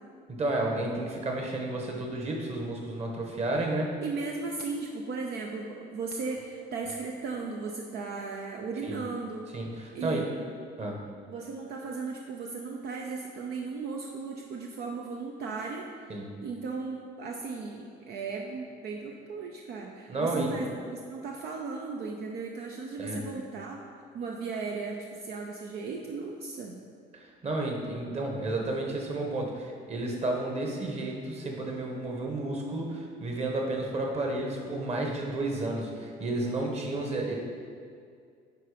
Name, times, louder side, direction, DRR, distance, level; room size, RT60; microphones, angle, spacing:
voice 1, 0.3-3.9 8.8-9.0 9.5-10.3 10.8-11.0 16.1-16.3 20.1-20.6 23.0-23.2 27.1-37.4, right 2 dB, 40° right, 0 dB, 1.5 m, -32 dB
voice 2, 4.0-9.5 9.9-10.3 11.3-23.8 24.1-26.8, right 4 dB, 70° right, 1 dB, 0.7 m, -36 dB
10.0 x 3.8 x 5.2 m, 2.2 s
cardioid pair, 110°, 17 cm